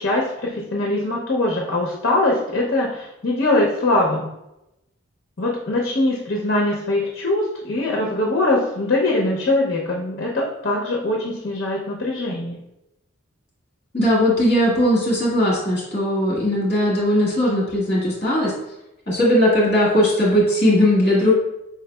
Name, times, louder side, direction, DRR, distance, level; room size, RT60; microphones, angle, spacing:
voice 1, 0.0-4.3 5.4-12.6, left 2 dB, 50° left, -1 dB, 0.6 m, -22 dB
voice 2, 13.9-18.5 19.1-21.3, left 1 dB, 30° left, -5 dB, 1.5 m, -18 dB
4.7 x 3.8 x 2.2 m, 0.88 s
head